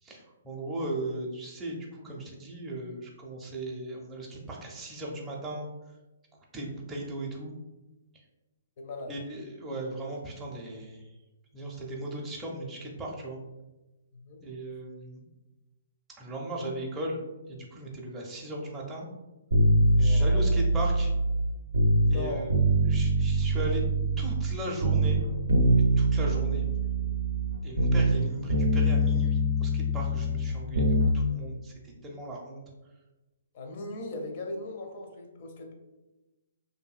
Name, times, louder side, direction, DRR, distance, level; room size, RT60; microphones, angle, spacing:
voice 1, 0.0-5.7 6.5-7.5 9.1-11.1 11.5-13.4 14.4-15.2 16.2-17.2 17.5-19.1 20.0-21.1 22.1-22.6 22.8-23.8 24.2-25.2 25.7-26.7 27.6-32.6, right 1 dB, 10° right, -4 dB, 0.5 m, -37 dB
voice 2, 8.8-9.1 14.1-14.4 19.9-20.4 22.1-22.5 33.5-35.7, left 2 dB, 50° left, 2 dB, 0.5 m, -38 dB
sound 1, 19.5-22.2 22.5-24.6 24.8-28.2 28.5-31.1 31.4-31.5, right 1 dB, 85° right, 0.5 m, -24 dB
2.6 x 2.6 x 2.4 m, 1.1 s
hypercardioid pair, 135°, 0 cm